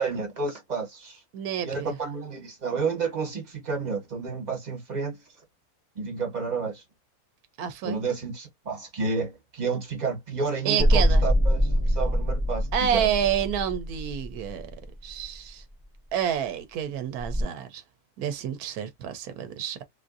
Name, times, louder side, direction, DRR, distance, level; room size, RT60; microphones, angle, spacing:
voice 1, 0.0-1.2 1.6-5.1 5.9-6.8 7.8-12.7 12.9-13.1, right 4 dB, 30° right, 1.4 m, -30 dB
voice 2, 1.3-1.9 7.6-8.0 10.6-11.3 12.7-14.7 15.0-15.6 16.1-17.8 18.2-19.8, right 9 dB, 85° right, 1.1 m, -29 dB
sound 1, 10.8-15.2 17.2-17.4, equal, 25° left, 0.8 m, -24 dB
3.5 x 2.5 x 2.5 m
omnidirectional pair, 1.5 m